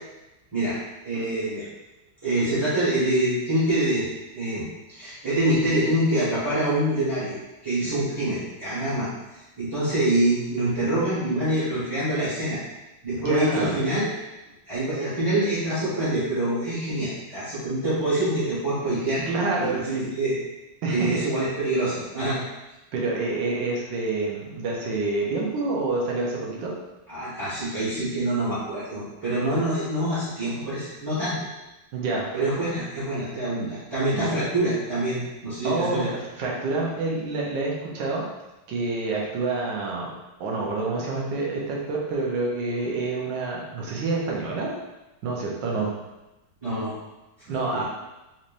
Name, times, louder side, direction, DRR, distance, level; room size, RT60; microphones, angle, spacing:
voice 1, 1.0-1.6 2.2-4.1 4.3-4.6 4.9-7.3 7.6-9.1 9.6-12.6 13.0-14.0 14.7-19.2 19.6-19.8 20.1-20.3 20.9-22.4 27.1-31.3 32.3-36.1 46.6-46.9 47.7-47.8, right 1 dB, 15° right, -14 dB, 1.3 m, -25 dB
voice 2, 13.2-13.8 19.3-20.1 20.8-21.2 22.3-22.4 22.9-26.7 31.9-32.3 33.6-33.7 34.1-34.3 35.6-38.2 38.7-40.1 40.4-44.7 45.2-45.9 47.5-47.8, right 3 dB, 70° right, -2 dB, 1.4 m, -27 dB
4.2 x 3.2 x 2.6 m, 1.0 s
omnidirectional pair, 2.2 m